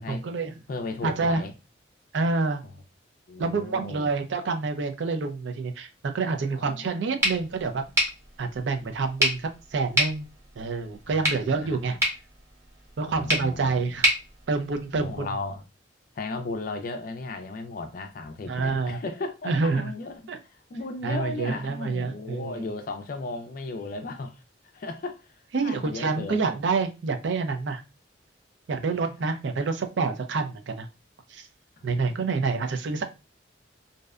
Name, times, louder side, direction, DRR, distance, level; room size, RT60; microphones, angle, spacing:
voice 1, 0.0-0.5 1.0-1.4 2.1-2.6 3.4-5.9 6.1-7.8 8.4-10.3 10.6-12.0 13.0-14.1 14.5-15.3 18.5-19.0 19.5-19.9 20.3-20.4 21.0-22.6 25.5-27.8 28.7-30.9 31.3-31.5 31.8-33.0, right 4 dB, 65° right, 0.4 m, -27 dB
voice 2, 0.7-1.5 2.6-2.7 3.3-4.1 6.5-7.5 11.1-12.0 13.1-14.0 14.9-15.6 16.2-24.4 24.7-26.4 28.8-29.1 31.8-32.2 32.5-32.6, left 3 dB, 45° left, 0.4 m, -36 dB
sound 1, 7.2-15.3, equal, 15° right, 0.7 m, -30 dB
2.6 x 2.1 x 2.3 m
head